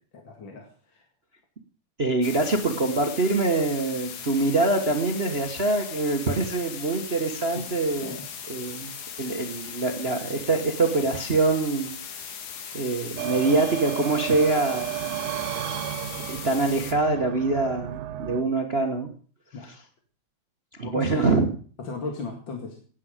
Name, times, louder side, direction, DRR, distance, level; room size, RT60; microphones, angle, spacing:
voice 1, 0.1-1.1 7.5-7.7 8.0-8.3 19.5-19.7 20.8-21.3 21.8-22.8, left 4 dB, 40° left, 2 dB, 2.4 m, -36 dB
voice 2, 2.0-8.2 8.5-8.9 9.2-11.9 12.7-15.3 16.3-19.1 20.8-21.5, right 3 dB, 50° right, 5 dB, 0.7 m, -24 dB
sound 1, 2.2-16.9, left 7 dB, 80° left, 3.0 m, -39 dB
sound 2, 13.2-18.4, right 13 dB, 80° right, 2.3 m, -33 dB
16.5 x 9.6 x 5.1 m, 0.43 s
omnidirectional pair, 3.5 m